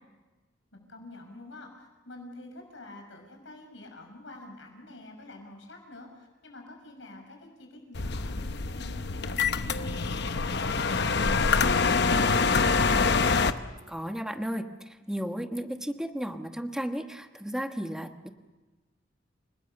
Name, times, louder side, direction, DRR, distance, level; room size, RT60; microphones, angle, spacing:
voice 1, 0.7-13.2, left 2 dB, 75° left, 3 dB, 6.1 m, -47 dB
sound 1, 7.9-13.5, left 4 dB, 60° left, 0.9 m, -25 dB
voice 2, 13.9-18.3, equal, 5° right, 6 dB, 1.2 m, -34 dB
29.5 x 19.0 x 6.9 m, 1.2 s
head